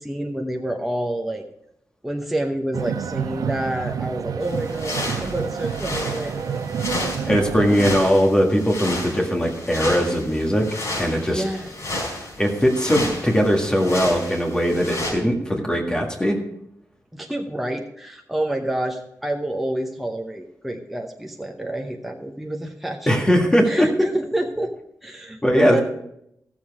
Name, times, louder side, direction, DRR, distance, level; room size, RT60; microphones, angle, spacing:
voice 1, 0.0-1.4 2.0-6.7 11.2-12.1 17.1-23.1 23.7-24.7 25.0-25.9, right 1 dB, 5° right, 2 dB, 0.8 m, -28 dB
sound 1, 2.7-8.0, right 7 dB, 85° right, 0.5 m, -29 dB
sound 2, 4.4-15.1, left 1 dB, 55° left, 4.8 m, -32 dB
voice 2, 7.3-10.7 11.0-11.4 12.4-16.4 23.1-23.9 25.4-25.8, equal, 15° left, 0 dB, 1.7 m, -20 dB
15.0 x 7.3 x 4.8 m, 0.77 s
wide cardioid pair, 165°, 6 cm